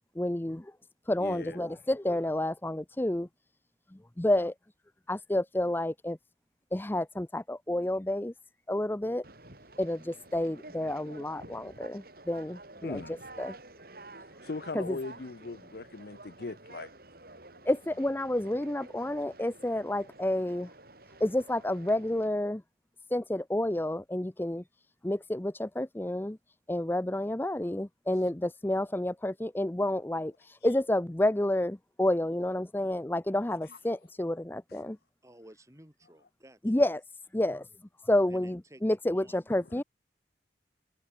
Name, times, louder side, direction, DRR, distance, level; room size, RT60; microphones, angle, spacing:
voice 1, 0.2-0.7 1.1-3.3 3.9-4.5 5.1-6.2 6.7-8.3 8.7-9.2 9.8-13.0 13.4-13.6 14.7-15.0 17.7-20.7 21.2-22.6 23.1-24.6 25.0-26.4 26.7-35.0 36.6-37.0 37.3-37.7 38.0-39.8, left 1 dB, 10° left, 0.5 m, -30 dB
voice 2, 1.2-1.7 12.8-13.2 14.2-16.9 33.7-33.8, left 3 dB, 55° left, 0.6 m, -40 dB
Conversation, 9.2-22.3, right 2 dB, 55° right, 7.5 m, -50 dB
voice 3, 35.2-36.8 38.3-39.6, right 1 dB, 15° right, 4.9 m, -55 dB
head